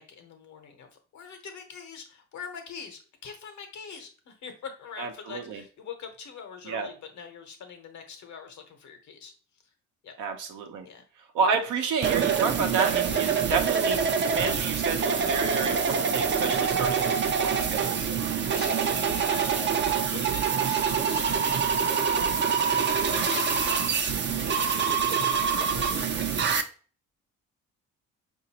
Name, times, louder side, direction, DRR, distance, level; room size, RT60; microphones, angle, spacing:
voice 1, 0.0-9.3 10.0-10.1 10.8-11.0 13.1-13.4 18.4-22.6 23.0-26.5, left 6 dB, 70° left, 5 dB, 1.0 m, -43 dB
voice 2, 5.0-5.6 6.7-6.9 10.2-10.8 11.3-18.1, right 5 dB, 80° right, 5 dB, 0.8 m, -30 dB
sound 1, 12.0-26.6, right 6 dB, 40° right, 0.5 m, -25 dB
4.9 x 2.6 x 2.8 m, 0.39 s
cardioid pair, 90°, 30 cm